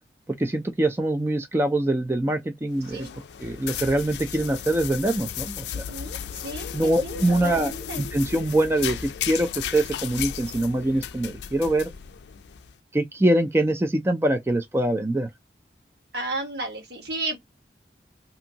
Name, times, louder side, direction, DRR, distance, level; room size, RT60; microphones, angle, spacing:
voice 1, 0.4-3.1 3.4-5.8 6.7-11.9 12.9-15.3, right 1 dB, 15° right, 0.3 m, -24 dB
sound 1, 2.7-12.7, left 9 dB, 75° left, 0.4 m, -35 dB
voice 2, 5.7-8.0 16.1-17.4, right 2 dB, 70° right, 1.3 m, -34 dB
2.7 x 2.6 x 2.7 m
head